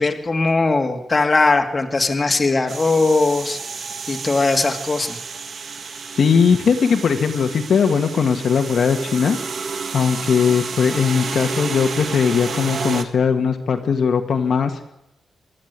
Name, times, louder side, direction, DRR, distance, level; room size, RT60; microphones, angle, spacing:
voice 1, 0.0-3.6 4.1-5.2, left 3 dB, 25° left, 4 dB, 2.2 m, -19 dB
sound 1, 2.7-13.1, right 5 dB, 50° right, 1.8 m, -30 dB
voice 2, 6.2-9.4 9.9-14.9, left 6 dB, 60° left, 5 dB, 1.7 m, -19 dB
24.0 x 13.0 x 9.5 m, 0.85 s
wide cardioid pair, 145°, 0 cm